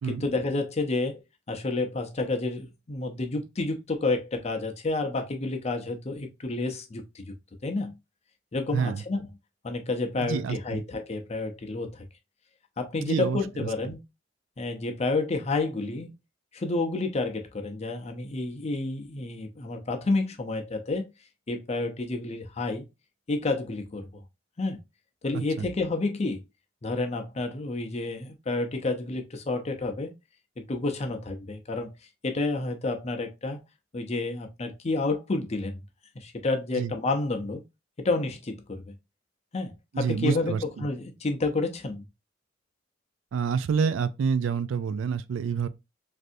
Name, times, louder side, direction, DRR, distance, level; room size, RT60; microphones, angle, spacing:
voice 1, 0.0-1.2 1.5-7.2 7.6-7.9 8.5-9.3 9.6-12.0 12.8-14.0 14.6-16.1 16.5-21.1 21.5-22.9 23.3-24.1 24.6-24.8 25.2-26.4 26.8-30.1 30.6-31.9 32.2-33.6 33.9-35.8 36.2-37.6 38.0-38.9 39.5-42.1, left 3 dB, 35° left, 0.5 m, -30 dB
voice 2, 8.7-9.0 10.2-10.8 13.0-13.7 25.3-25.7 36.8-36.9 39.9-40.6 43.3-45.7, right 6 dB, 80° right, 0.3 m, -28 dB
3.3 x 2.6 x 2.5 m
head